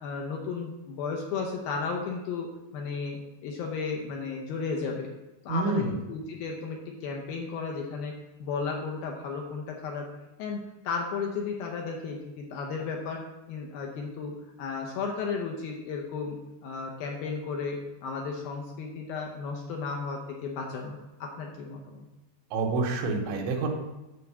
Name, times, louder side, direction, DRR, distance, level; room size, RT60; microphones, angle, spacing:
voice 1, 0.0-2.5 2.7-5.1 5.4-8.1 8.4-10.1 10.4-13.2 13.5-14.3 14.6-22.0, left 5 dB, 75° left, 0 dB, 2.2 m, -34 dB
voice 2, 5.5-5.9 22.5-23.7, right 3 dB, 90° right, 2 dB, 3.5 m, -28 dB
9.6 x 4.5 x 7.2 m, 1.0 s
omnidirectional pair, 5.2 m